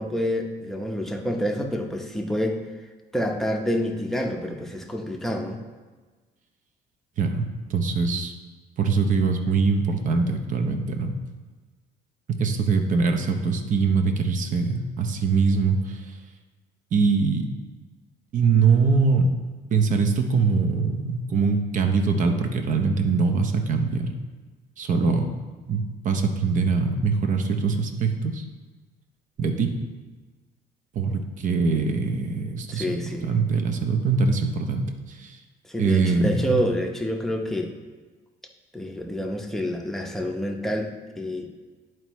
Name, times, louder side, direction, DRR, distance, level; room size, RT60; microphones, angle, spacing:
voice 1, 0.0-2.6 3.1-5.6 32.7-33.3 35.6-37.7 38.7-41.5, equal, ahead, 1 dB, 0.8 m, -28 dB
voice 2, 7.7-8.3 8.8-11.2 12.4-16.2 16.9-17.5 18.3-19.3 19.7-24.1 24.8-25.3 25.6-28.4 29.4-29.8 30.9-32.9 33.2-35.4 35.8-36.6, right 4 dB, 50° right, 6 dB, 0.7 m, -23 dB
11.0 x 4.5 x 3.1 m, 1.3 s
cardioid pair, 110°, 17 cm